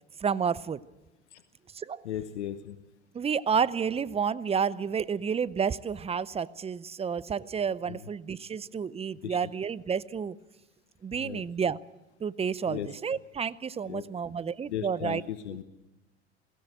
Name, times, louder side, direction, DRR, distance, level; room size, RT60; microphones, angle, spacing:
voice 1, 0.2-0.8 1.7-2.0 3.1-10.4 11.0-11.8 12.2-15.2, right 6 dB, 20° right, 0.6 m, -30 dB
voice 2, 2.0-2.8 7.9-8.0 9.2-9.4 11.1-11.4 12.7-12.9 13.9-14.0 14.7-15.6, left 10 dB, 85° left, 1.0 m, -36 dB
21.5 x 16.5 x 7.8 m
hypercardioid pair, 80°, 33 cm